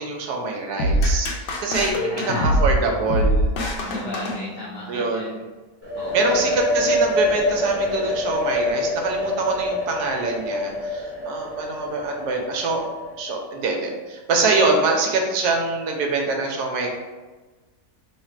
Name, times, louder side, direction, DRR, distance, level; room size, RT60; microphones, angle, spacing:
voice 1, 0.0-3.5 4.9-5.4 6.1-12.9 13.2-16.9, right 3 dB, 70° right, 1 dB, 1.1 m, -24 dB
sound 1, 0.8-5.0, equal, 85° left, 1.3 m, -23 dB
voice 2, 1.9-2.6 3.9-5.4 6.0-6.6, left 2 dB, 65° left, -4 dB, 0.8 m, -35 dB
sound 2, 5.8-13.5, left 1 dB, 15° right, 0.5 m, -26 dB
3.1 x 2.4 x 4.3 m, 1.3 s
omnidirectional pair, 1.9 m